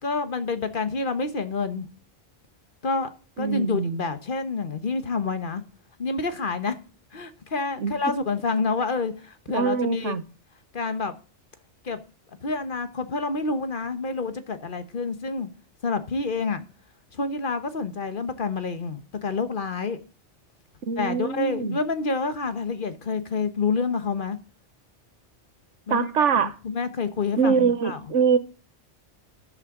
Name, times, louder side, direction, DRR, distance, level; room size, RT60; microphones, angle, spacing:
voice 1, 0.0-1.9 2.8-3.1 3.4-5.6 6.0-6.7 7.1-10.2 10.7-11.1 11.8-12.0 12.4-15.5 15.8-16.6 17.1-20.0 21.0-24.4 25.9-26.1 26.3-28.0, left 4 dB, 50° left, 1.2 m, -28 dB
voice 2, 3.4-4.0 7.8-7.9 9.5-10.2 20.9-21.8 25.9-26.5 27.4-28.4, right 6 dB, 85° right, 1.3 m, -23 dB
13.0 x 8.2 x 3.7 m
omnidirectional pair, 1.2 m